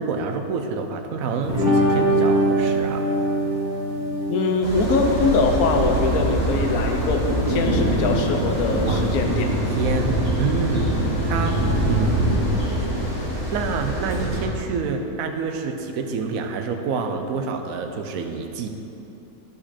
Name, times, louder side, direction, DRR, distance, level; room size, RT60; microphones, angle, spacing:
voice 1, 0.0-3.1 8.9-9.2 9.8-10.9 11.2-11.6 11.8-12.4 13.5-18.7, right 5 dB, 70° right, 5 dB, 1.1 m, -27 dB
sound 1, 1.4-9.2, right 1 dB, 40° right, 1.5 m, -25 dB
voice 2, 4.3-9.6, left 3 dB, 80° left, 3 dB, 1.3 m, -22 dB
sound 2, 4.6-14.4, right 1 dB, 45° left, 2.0 m, -23 dB
10.5 x 5.2 x 4.2 m, 2.9 s
omnidirectional pair, 1.5 m